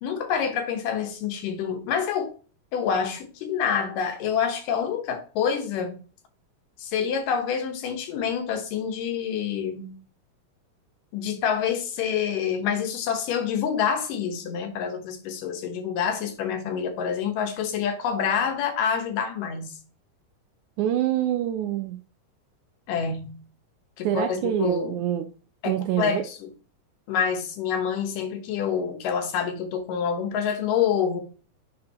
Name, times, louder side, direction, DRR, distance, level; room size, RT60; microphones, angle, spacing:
voice 1, 0.0-2.3 2.7-5.9 6.8-9.9 11.1-19.8 22.9-23.4 24.0-25.0 25.6-26.5 27.1-31.2, left 7 dB, 80° left, 2.6 m, -27 dB
voice 2, 20.8-22.0 24.0-25.3 25.7-26.2, right 11 dB, 80° right, 1.8 m, -26 dB
9.7 x 3.8 x 2.8 m
omnidirectional pair, 3.8 m